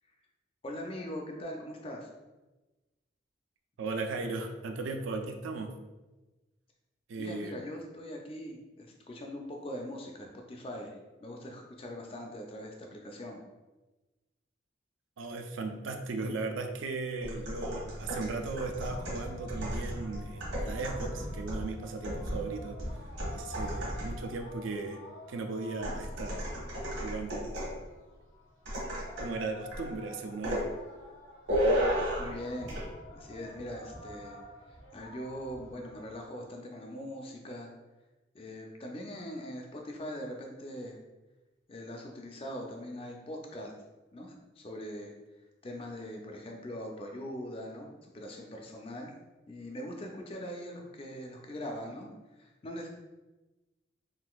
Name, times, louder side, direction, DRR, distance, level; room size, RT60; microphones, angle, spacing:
voice 1, 0.6-2.1 7.1-13.4 32.2-32.8 33.1-34.4 34.7-37.7 38.3-41.0 41.7-43.7 44.1-45.1 45.6-49.1 49.5-52.9, equal, 30° left, 1 dB, 0.4 m, -41 dB
voice 2, 3.8-5.7 7.1-7.6 15.2-25.0 25.3-26.5 27.0-27.7 29.2-30.7, right 3 dB, 85° right, 5 dB, 0.4 m, -37 dB
sound 1, 17.2-24.3 25.8-27.8 28.7-29.4 29.7-29.9 30.4-30.7 31.5-32.4 32.7-32.9, equal, 65° right, 1.1 m, -34 dB
sound 2, 17.4-36.3, left 1 dB, 80° left, 1.4 m, -51 dB
3.7 x 2.5 x 2.3 m, 1.1 s
head